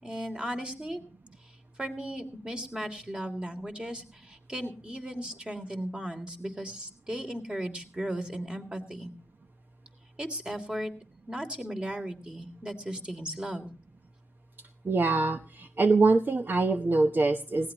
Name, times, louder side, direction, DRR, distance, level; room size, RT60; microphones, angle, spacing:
voice 1, 0.0-1.0 1.4-1.5 1.8-9.1 10.2-10.9 11.3-13.7, equal, 20° right, 5 dB, 3.1 m, -36 dB
voice 2, 14.8-17.7, right 3 dB, 45° right, 7 dB, 0.9 m, -24 dB
19.5 x 17.5 x 3.0 m, 0.36 s
cardioid pair, 70°, 5 cm